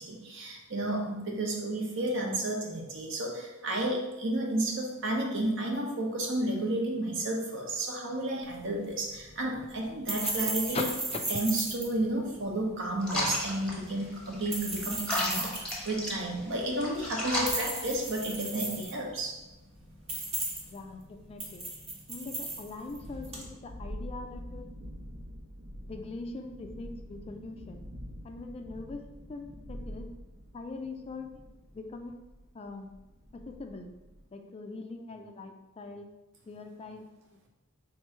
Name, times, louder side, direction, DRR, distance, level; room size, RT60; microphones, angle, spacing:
voice 1, 0.0-10.9 11.3-19.4, right 1 dB, 60° right, 0 dB, 0.8 m, -32 dB
sound 1, 8.4-23.5, right 2 dB, 30° right, 0.9 m, -37 dB
sound 2, 13.0-18.4, equal, 5° left, 0.8 m, -35 dB
voice 2, 20.7-21.7 22.1-24.7 25.9-27.8 28.2-30.1 30.5-31.4 31.7-32.2 32.5-32.9 33.3-33.9 34.3-36.1 36.5-37.2, left 3 dB, 30° left, 5 dB, 0.3 m, -41 dB
Thunderstorm, 22.9-34.2, equal, 85° right, 1.0 m, -46 dB
3.6 x 3.0 x 4.4 m, 1.0 s
head